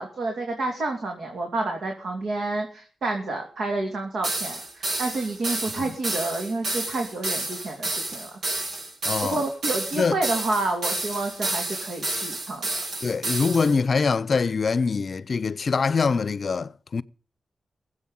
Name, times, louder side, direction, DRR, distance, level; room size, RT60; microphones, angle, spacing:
voice 1, 0.0-8.3 9.2-12.6, right 2 dB, 70° right, 3.1 m, -29 dB
sound 1, 4.2-13.8, right 2 dB, 90° right, 6.5 m, -30 dB
voice 2, 9.1-9.4 9.9-10.2 13.0-17.0, left 5 dB, 45° left, 0.6 m, -24 dB
23.5 x 8.0 x 5.5 m
wide cardioid pair, 140°, 0 cm